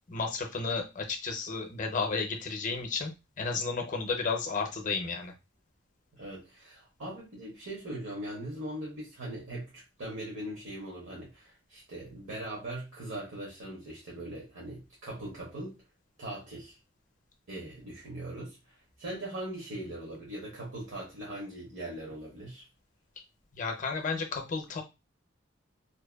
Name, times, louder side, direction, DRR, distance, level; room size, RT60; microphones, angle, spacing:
voice 1, 0.1-3.1 3.4-5.3 23.5-24.8, left 4 dB, 40° left, 4 dB, 0.5 m, -32 dB
voice 2, 6.1-15.8 16.2-16.8 17.5-22.6, right 1 dB, 75° right, -4 dB, 0.9 m, -40 dB
2.7 x 2.1 x 2.2 m, 0.26 s
head